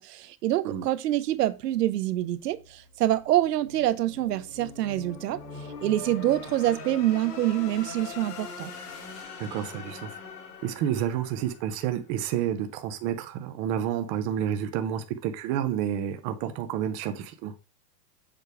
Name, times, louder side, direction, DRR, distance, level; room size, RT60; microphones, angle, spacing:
voice 1, 0.0-8.7, right 14 dB, 90° right, 0.8 m, -26 dB
sound 1, 1.3-12.3, left 4 dB, 85° left, 3.2 m, -43 dB
voice 2, 9.4-10.2 10.6-17.5, right 10 dB, 20° right, 0.3 m, -30 dB
6.8 x 3.3 x 4.6 m
supercardioid pair, 135°, 46 cm